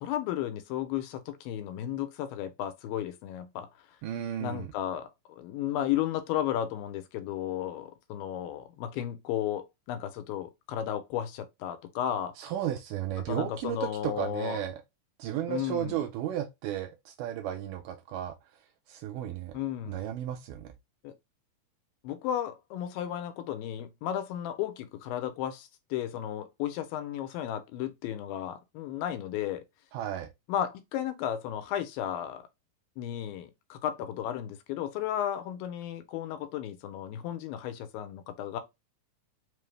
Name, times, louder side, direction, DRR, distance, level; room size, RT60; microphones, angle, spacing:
voice 1, 0.0-3.7 4.4-12.3 13.3-14.6 15.5-16.0 19.5-20.0 21.0-21.1 22.0-29.6 30.5-32.4 33.0-38.6, left 11 dB, 90° left, 2.4 m, -34 dB
voice 2, 4.0-4.7 12.4-14.8 15.2-18.4 18.9-19.5 19.9-20.7 29.9-30.3, right 11 dB, 80° right, 2.0 m, -34 dB
5.4 x 2.0 x 3.2 m
omnidirectional pair, 4.0 m